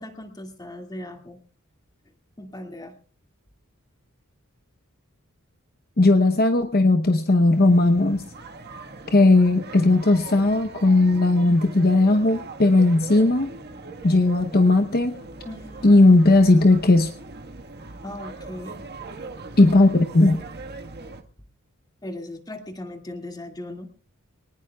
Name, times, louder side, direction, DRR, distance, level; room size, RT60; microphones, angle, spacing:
voice 1, 0.0-1.4 2.4-2.9 15.4-16.2 18.0-18.8 19.9-20.0 22.0-23.9, left 1 dB, 20° left, 4 dB, 2.2 m, -38 dB
voice 2, 6.0-8.2 9.1-13.5 14.0-15.1 15.8-17.1 19.6-20.4, left 2 dB, 45° left, 6 dB, 0.9 m, -17 dB
sound 1, 7.5-21.2, right 3 dB, 50° right, 1.5 m, -40 dB
24.0 x 19.0 x 2.3 m, 0.39 s
head